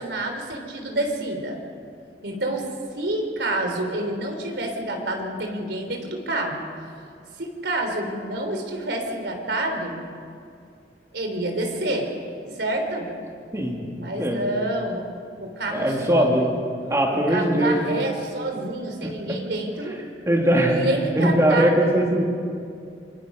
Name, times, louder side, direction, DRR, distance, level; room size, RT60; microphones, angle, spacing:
voice 1, 0.0-1.6 2.2-2.6 3.0-6.7 7.4-10.1 11.1-12.1 12.5-13.1 13.9-15.0 15.4-16.5 17.1-20.0 20.7-21.9, right 1 dB, 85° right, 3 dB, 3.5 m, -28 dB
voice 2, 15.7-16.4 16.9-17.8 19.0-19.4 20.3-20.8 21.1-22.2, right 1 dB, 15° right, -1 dB, 3.1 m, -20 dB
27.0 x 22.5 x 5.5 m, 2.4 s
head